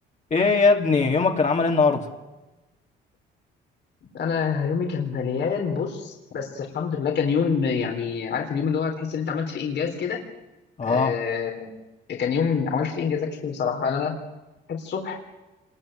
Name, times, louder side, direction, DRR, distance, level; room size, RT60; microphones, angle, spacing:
voice 1, 0.3-2.1 10.8-11.1, left 4 dB, 35° left, 2 dB, 2.8 m, -20 dB
voice 2, 4.1-10.2 10.8-11.7 12.1-14.2 14.7-15.2, left 6 dB, 60° left, 2 dB, 3.8 m, -26 dB
27.0 x 22.0 x 9.1 m, 1.1 s
cardioid pair, 90°, 20 cm